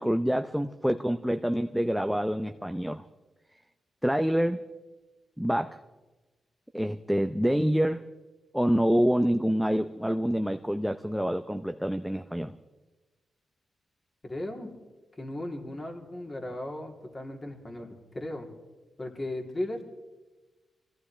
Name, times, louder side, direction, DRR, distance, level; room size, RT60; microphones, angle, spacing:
voice 1, 0.0-3.1 4.0-4.6 5.4-5.8 6.7-8.1 8.5-12.6, equal, ahead, 7 dB, 0.6 m, -27 dB
voice 2, 14.2-14.7 15.2-18.5 19.0-19.8, left 1 dB, 35° left, 1 dB, 3.1 m, -36 dB
25.0 x 16.5 x 3.3 m, 1.2 s
supercardioid pair, 55°, 0 cm